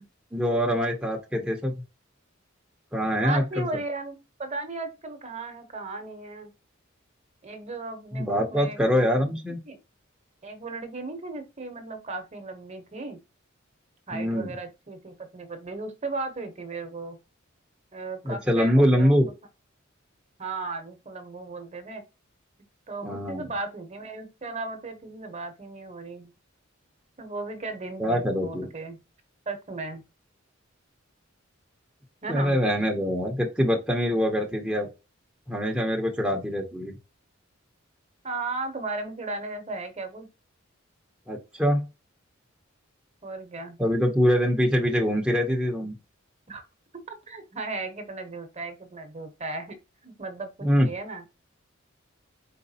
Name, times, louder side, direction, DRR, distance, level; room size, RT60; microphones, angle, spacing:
voice 1, 0.3-1.8 2.9-3.7 8.1-9.6 14.1-14.5 18.2-19.3 23.0-23.5 28.0-28.7 32.3-34.9 35.5-37.0 41.3-41.8 43.8-45.9 50.6-50.9, equal, 5° right, 0.7 m, -24 dB
voice 2, 3.2-6.5 7.4-9.2 9.7-9.8 10.4-13.2 14.1-17.2 17.9-19.2 20.4-22.0 22.9-26.3 27.2-29.0 29.5-30.0 32.2-32.6 38.2-40.3 43.2-43.8 46.5-46.6 47.1-49.8 50.0-51.2, right 3 dB, 35° right, 0.9 m, -36 dB
4.5 x 4.0 x 2.8 m
head